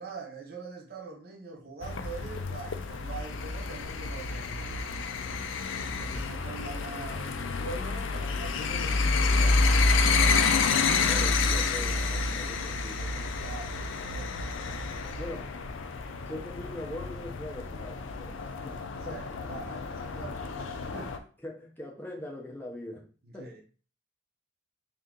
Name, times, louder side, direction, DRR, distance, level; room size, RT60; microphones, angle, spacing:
voice 1, 0.0-4.8 5.9-10.3 13.4-14.4 14.8-15.3 19.0-21.2 23.3-23.6, right 4 dB, 45° right, 0.8 m, -44 dB
sound 1, 1.8-21.2, left 4 dB, 60° left, 0.4 m, -29 dB
voice 2, 11.1-13.3 15.2-15.6 16.3-18.8 19.1-19.2 21.1-23.1 23.3-23.5, left 1 dB, 10° left, 0.6 m, -42 dB
3.6 x 2.7 x 3.6 m
head